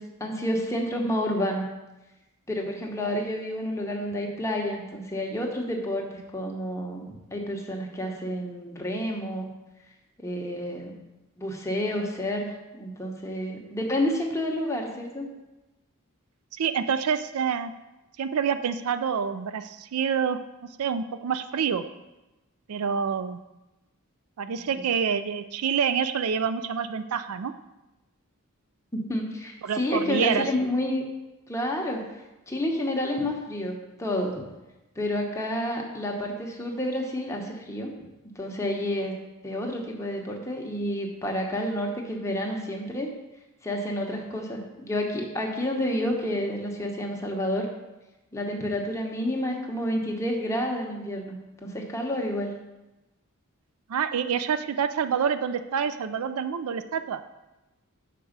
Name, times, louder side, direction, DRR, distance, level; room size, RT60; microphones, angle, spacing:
voice 1, 0.0-1.7 2.5-9.5 10.2-10.9 11.4-12.5 12.7-15.3 24.7-24.8 28.9-31.0 31.5-32.0 32.5-34.4 35.0-37.9 38.3-39.1 39.4-43.1 43.6-47.7 48.3-51.3 51.6-52.5, left 1 dB, 15° left, 0 dB, 1.0 m, -29 dB
voice 2, 16.5-17.7 18.2-20.4 20.8-21.8 22.7-23.4 24.4-27.5 29.6-30.5 53.9-57.2, right 7 dB, 75° right, 11 dB, 0.4 m, -27 dB
5.9 x 4.7 x 6.5 m, 1.0 s
head